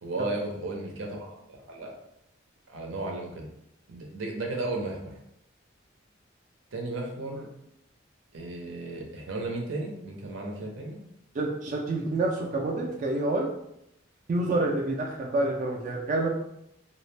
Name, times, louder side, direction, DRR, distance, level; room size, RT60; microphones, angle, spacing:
voice 1, 0.0-1.9 2.7-3.5 3.9-5.1 6.7-7.5 8.3-11.0, right 2 dB, 85° right, 0 dB, 0.6 m, -34 dB
voice 2, 11.3-13.5 14.3-16.3, right 2 dB, 40° right, -1 dB, 0.3 m, -28 dB
2.4 x 2.0 x 3.2 m, 0.80 s
head